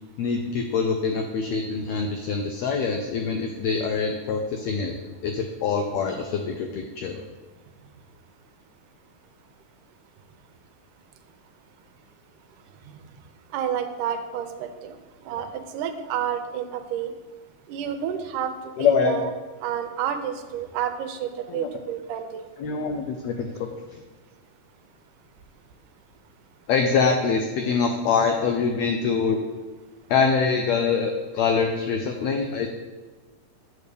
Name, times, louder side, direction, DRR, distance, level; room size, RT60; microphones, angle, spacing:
voice 1, 0.2-5.0 5.2-7.2 18.8-19.3 21.5-21.7 22.6-23.7 26.7-29.4 30.1-32.7, left 5 dB, 90° left, 4 dB, 1.5 m, -24 dB
voice 2, 13.5-15.0 15.3-17.1 17.7-19.3 19.6-22.5, right 9 dB, 85° right, 7 dB, 2.1 m, -30 dB
8.5 x 3.4 x 6.6 m, 1.3 s
omnidirectional pair, 3.7 m